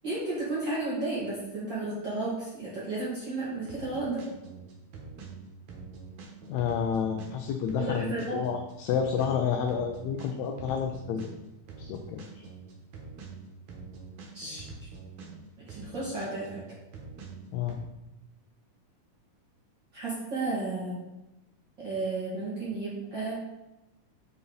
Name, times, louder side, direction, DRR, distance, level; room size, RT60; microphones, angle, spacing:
voice 1, 0.0-4.2 7.7-8.4 14.3-14.7 15.6-16.6 19.9-21.0 21.8-23.4, right 2 dB, 40° right, -8 dB, 2.3 m, -33 dB
sound 1, 3.7-15.4 15.7-17.8, right 4 dB, 85° right, 2.7 m, -45 dB
voice 2, 6.5-11.3 11.8-12.4 17.5-17.8, left 7 dB, 75° left, 4 dB, 1.8 m, -30 dB
7.7 x 5.6 x 3.9 m, 0.96 s
omnidirectional pair, 3.5 m